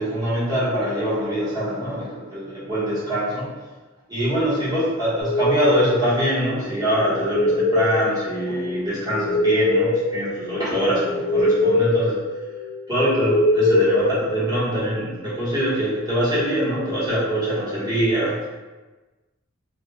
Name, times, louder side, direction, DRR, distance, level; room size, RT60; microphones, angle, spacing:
voice 1, 0.0-3.5 4.1-12.2 12.9-18.5, right 1 dB, 20° right, -11 dB, 1.1 m, -23 dB
sound 1, 5.2-14.9, left 2 dB, 75° left, 0.6 m, -23 dB
2.3 x 2.2 x 3.1 m, 1.2 s
head